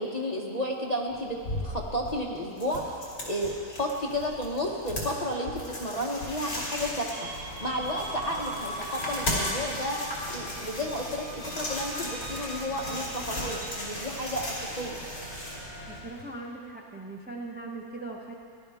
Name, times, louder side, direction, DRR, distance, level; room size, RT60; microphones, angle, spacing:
voice 1, 0.0-7.1 7.6-10.0 10.3-15.0, equal, 35° left, -1 dB, 0.7 m, -32 dB
sound 1, 1.1-16.2, left 1 dB, 60° left, 3.2 m, -37 dB
sound 2, 7.1-13.7, right 1 dB, 90° right, 2.0 m, -41 dB
sound 3, 7.2-16.0, right 1 dB, 65° right, 4.2 m, -45 dB
voice 2, 15.9-18.3, right 3 dB, 15° right, -1 dB, 0.4 m, -40 dB
17.0 x 11.5 x 3.5 m, 2.5 s
omnidirectional pair, 1.6 m